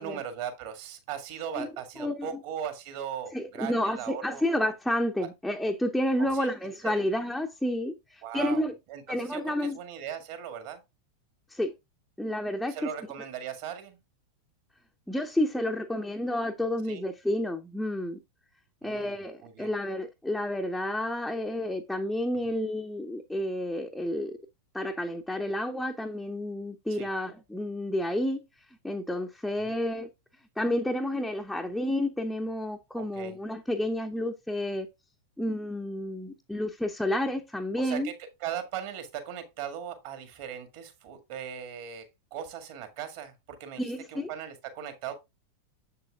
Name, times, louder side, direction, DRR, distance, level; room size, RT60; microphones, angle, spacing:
voice 1, 0.0-4.5 6.2-6.6 6.8-7.1 8.2-8.6 8.9-10.8 12.7-14.0 16.9-17.0 18.8-19.2 19.4-19.7 22.4-22.5 26.9-27.1 29.6-29.8 33.0-33.3 37.8-38.1 38.4-43.8 44.1-45.2, right 9 dB, 50° right, 1.8 m, -38 dB
voice 2, 2.0-2.3 3.3-8.7 9.1-9.8 11.5-11.7 12.2-12.8 15.1-18.2 18.8-24.4 24.7-28.4 28.8-30.1 30.6-34.9 35.4-38.1 43.8-44.3, left 1 dB, 5° left, 0.6 m, -30 dB
7.5 x 6.7 x 2.4 m
figure-of-eight pair, 90°, 0 cm